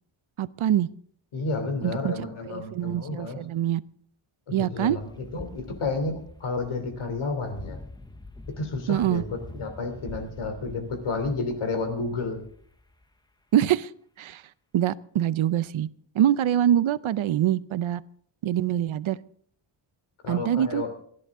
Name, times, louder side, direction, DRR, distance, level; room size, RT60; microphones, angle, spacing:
voice 1, 0.4-0.9 1.8-2.1 2.5-3.8 4.5-5.0 8.9-9.2 13.5-13.9 14.2-14.4 14.7-15.9 16.1-18.0 18.4-19.2 20.3-20.8, right 11 dB, 70° right, 17 dB, 0.7 m, -24 dB
voice 2, 1.3-3.4 4.5-7.8 8.6-12.4 20.2-20.9, left 3 dB, 80° left, 7 dB, 3.1 m, -31 dB
sound 1, 5.0-13.2, left 2 dB, 10° left, 0.6 m, -45 dB
28.5 x 11.0 x 3.7 m, 0.63 s
wide cardioid pair, 180°, 49 cm